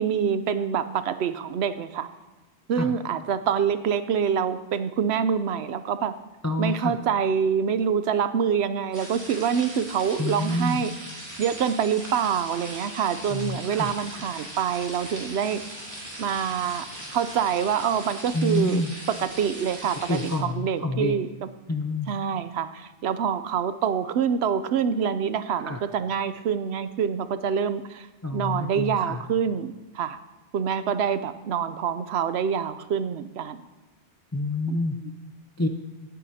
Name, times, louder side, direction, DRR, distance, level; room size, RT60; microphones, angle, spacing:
voice 1, 0.0-2.1 2.7-6.1 6.6-10.9 11.4-15.6 16.2-18.8 19.2-21.5 22.1-28.1 28.3-30.2 30.5-33.6 34.7-34.9, right 7 dB, 75° right, 12 dB, 0.8 m, -26 dB
voice 2, 6.4-7.0 10.2-10.8 13.3-13.9 18.3-18.9 20.1-21.2 21.7-22.1 25.6-25.8 28.2-29.2 34.3-35.0 35.6-35.7, left 1 dB, 25° left, 5 dB, 0.3 m, -27 dB
sound 1, 8.9-20.4, right 1 dB, 15° right, 2.8 m, -40 dB
17.5 x 8.4 x 2.8 m, 1.2 s
omnidirectional pair, 1.1 m